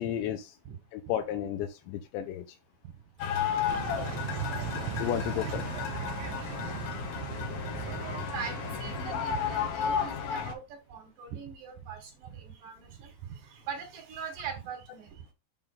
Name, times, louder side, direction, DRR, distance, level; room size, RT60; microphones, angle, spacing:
voice 1, 0.0-0.5 0.9-2.5 4.8-5.6, left 10 dB, 85° left, 2.9 m, -33 dB
sound 1, 3.2-10.5, left 8 dB, 65° left, 2.7 m, -33 dB
sound 2, 3.7-9.6, right 12 dB, 75° right, 2.7 m, -38 dB
voice 2, 6.6-7.0 7.8-15.2, right 7 dB, 55° right, 2.9 m, -42 dB
7.4 x 3.8 x 6.6 m
omnidirectional pair, 5.2 m